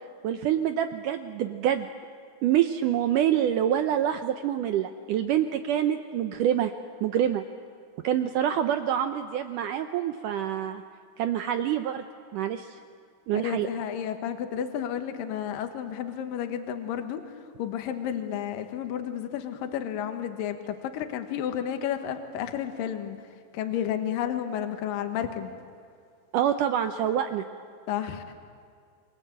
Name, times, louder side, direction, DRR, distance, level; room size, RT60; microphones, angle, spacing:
voice 1, 0.2-1.9 2.4-6.7 7.0-7.4 8.0-10.8 11.2-12.0 12.3-12.8 13.3-13.7 26.3-27.4, right 10 dB, 80° right, 8 dB, 1.9 m, -26 dB
voice 2, 13.3-17.2 17.6-23.2 23.5-25.5 27.9-28.3, left 9 dB, 65° left, 7 dB, 2.9 m, -31 dB
28.5 x 23.0 x 8.0 m, 2.3 s
omnidirectional pair, 4.6 m